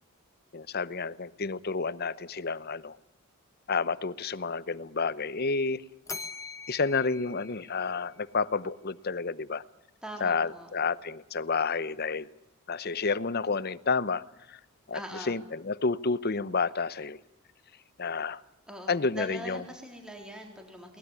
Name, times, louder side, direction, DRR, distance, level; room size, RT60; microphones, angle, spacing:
voice 1, 0.5-3.0 3.7-5.8 6.7-9.6 10.2-12.3 12.7-14.6 14.9-15.0 15.3-17.2 18.0-18.4 18.9-19.6, left 4 dB, 45° left, 17 dB, 0.8 m, -30 dB
Bell, 6.1-8.4, left 4 dB, 15° left, 1.3 m, -43 dB
voice 2, 10.0-10.7 14.9-15.3 18.7-21.0, equal, 5° right, 2 dB, 3.7 m, -42 dB
23.0 x 19.5 x 9.6 m, 0.90 s
head